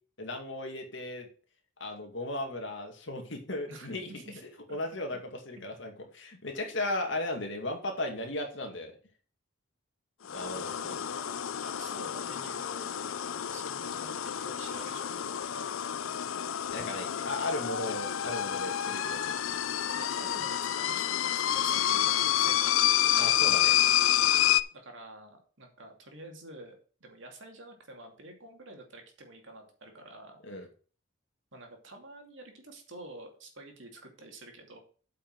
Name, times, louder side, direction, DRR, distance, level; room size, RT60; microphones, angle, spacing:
voice 1, 0.2-1.3 1.8-4.1 4.7-5.2 5.5-8.9 10.3-10.7 16.7-19.4 23.2-23.8 30.4-30.7, left 1 dB, 65° left, 3 dB, 2.3 m, -36 dB
voice 2, 3.7-4.4 4.7-4.8 10.5-13.1 13.5-15.7 16.8-17.3 17.7-17.9 20.0-22.7 24.7-26.8 27.0-30.4 31.5-34.8, right 2 dB, 65° right, 3 dB, 2.5 m, -49 dB
sound 1, 10.2-24.6, left 11 dB, 80° left, 0.5 m, -29 dB
8.3 x 5.7 x 6.0 m, 0.40 s
head